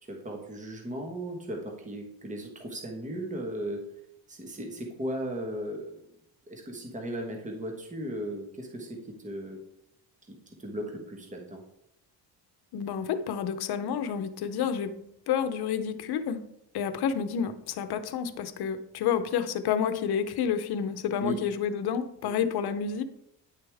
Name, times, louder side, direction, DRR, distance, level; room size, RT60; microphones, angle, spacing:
voice 1, 0.1-3.8 4.3-6.0 6.5-9.6 10.5-11.6 21.2-21.4 22.2-22.3, equal, 20° right, 1 dB, 1.4 m, -36 dB
voice 2, 12.7-14.9 15.3-16.4 16.7-23.0, left 7 dB, 65° left, 10 dB, 0.9 m, -29 dB
10.0 x 6.7 x 3.5 m, 0.80 s
cardioid pair, 130°, 42 cm